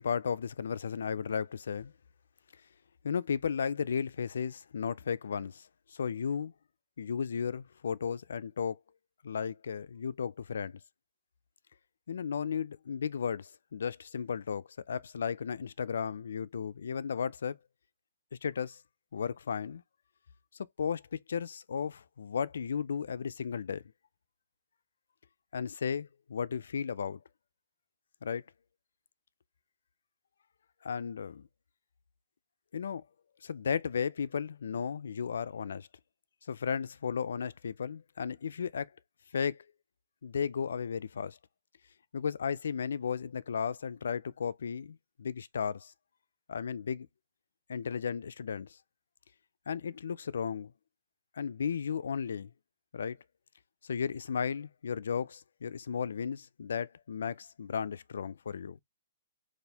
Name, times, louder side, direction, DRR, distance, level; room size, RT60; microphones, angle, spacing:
voice 1, 0.0-1.9 3.0-6.5 7.0-8.8 9.2-10.8 12.1-17.6 18.4-18.8 19.1-19.8 20.8-23.8 25.5-27.2 28.2-28.4 30.8-31.5 32.7-33.0 33.4-35.9 36.5-38.9 39.3-39.6 40.2-41.4 42.1-45.9 46.5-47.1 47.7-48.8 49.7-50.7 51.4-52.5 52.9-53.2 53.8-58.8, left 7 dB, 75° left, 0.3 m, -34 dB
4.2 x 2.5 x 3.4 m
hypercardioid pair, 170°, 0 cm